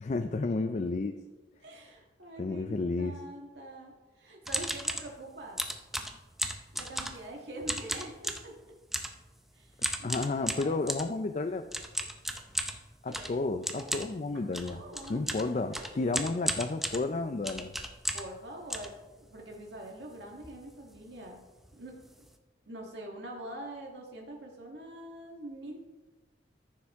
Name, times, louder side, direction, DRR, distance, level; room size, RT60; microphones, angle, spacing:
voice 1, 0.0-1.1 2.4-3.2 10.0-11.6 13.0-14.8 15.1-17.8, left 3 dB, 40° left, 7 dB, 0.4 m, -32 dB
voice 2, 1.6-5.6 6.7-8.5 9.5-10.8 13.0-13.4 13.8-14.0 14.3-16.3 18.1-21.4 21.8-22.0 22.7-25.8, right 1 dB, 70° right, 0 dB, 1.6 m, -45 dB
sound 1, 4.4-5.1 5.6-7.3 7.6-8.5 8.9-9.2 9.8-11.1 11.7-18.4 18.7-19.5 20.0-20.1 20.3-20.6 20.9-21.1 21.6-21.7 22.0-22.3, equal, ahead, 0.6 m, -35 dB
14.0 x 7.1 x 3.6 m, 1.2 s
head